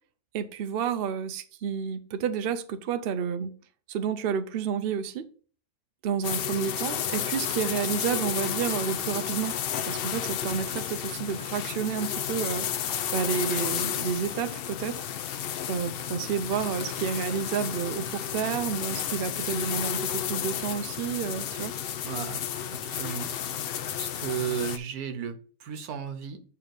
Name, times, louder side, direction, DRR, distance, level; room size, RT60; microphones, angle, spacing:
voice 1, 0.3-3.5 3.9-5.2 6.0-9.6 9.8-12.7 13.1-15.1 15.7-21.7, right 7 dB, 55° right, 0.6 m, -30 dB
sound 1, 6.2-24.8, left 9 dB, 85° left, 0.5 m, -32 dB
voice 2, 22.0-22.4 22.8-23.3 23.9-26.4, right 8 dB, 80° right, 1.4 m, -34 dB
8.5 x 3.3 x 4.8 m
omnidirectional pair, 1.6 m